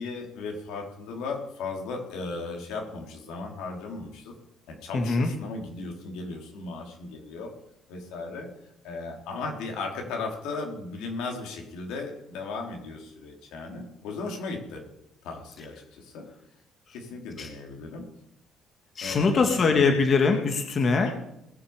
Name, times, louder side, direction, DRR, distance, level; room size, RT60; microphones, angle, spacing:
voice 1, 0.0-4.3 4.7-7.5 7.9-8.5 8.8-14.8 15.2-16.3 16.9-18.0 19.0-20.0 21.0-21.1, left 3 dB, 85° left, 2 dB, 3.7 m, -36 dB
voice 2, 4.9-5.3 17.4-17.5 19.0-21.1, left 4 dB, 40° left, 5 dB, 1.7 m, -22 dB
20.0 x 6.9 x 7.2 m, 0.79 s
cardioid pair, 125°, 0 cm